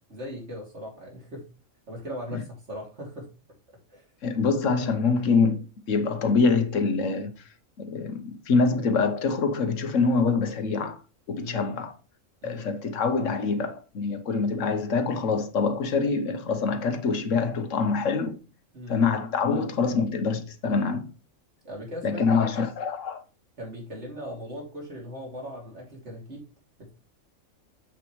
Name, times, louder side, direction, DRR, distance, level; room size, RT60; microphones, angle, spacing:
voice 1, 0.1-1.5 1.9-3.3 3.9-4.0 11.4-11.7 12.4-12.7 18.7-19.0 21.6-22.5 23.6-26.4 26.8-26.9, equal, 60° right, 3.1 m, -39 dB
voice 2, 4.2-7.3 7.8-11.0 11.3-11.9 12.4-18.3 18.9-21.1 22.0-23.2, left 4 dB, 70° left, 1.3 m, -25 dB
7.4 x 6.9 x 3.1 m
omnidirectional pair, 1.4 m